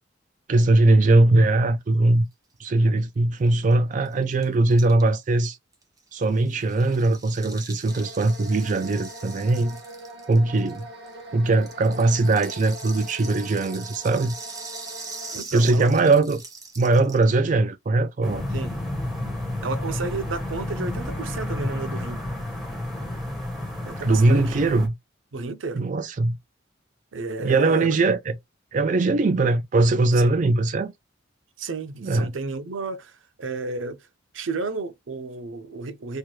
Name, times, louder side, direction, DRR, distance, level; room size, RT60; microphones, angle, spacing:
voice 1, 0.5-2.3 2.6-5.6 6.1-9.8 10.3-10.9 11.3-14.3 15.5-16.4 16.8-18.4 24.0-24.9 25.7-26.4 27.4-28.3 28.7-30.9 32.0-32.3, right 2 dB, 40° right, 0.4 m, -20 dB
Rattle (instrument), 3.4-3.5 3.7-3.8 4.0-11.1 11.5-17.3, right 4 dB, 20° right, 0.8 m, -42 dB
sound 1, 7.9-15.4, right 1 dB, 60° right, 2.3 m, -42 dB
voice 2, 15.3-15.9 18.5-18.8 19.6-22.2 23.9-24.6 25.3-25.9 27.1-28.1 30.2-30.4 31.6-34.1 34.3-36.2, right 3 dB, 85° right, 0.6 m, -32 dB
sound 2, 18.2-24.9, left 1 dB, ahead, 1.3 m, -31 dB
4.5 x 2.3 x 3.1 m
head